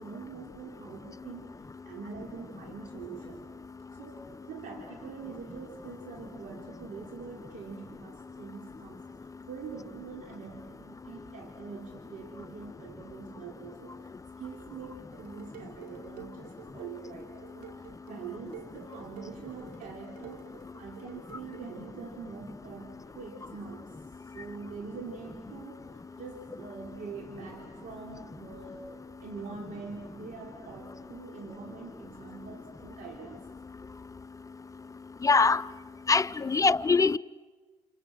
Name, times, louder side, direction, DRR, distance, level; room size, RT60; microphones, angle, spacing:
voice 1, 0.0-3.5 4.0-14.1 14.4-28.9 29.2-33.5 36.3-36.6, right 5 dB, 65° right, 3.7 m, -44 dB
Dishes pots and pans, 15.1-21.7, right 12 dB, 85° right, 2.2 m, -51 dB
voice 2, 35.2-35.6 36.1-37.2, left 4 dB, 25° left, 0.7 m, -23 dB
29.5 x 29.5 x 6.2 m
hypercardioid pair, 60°, 14 cm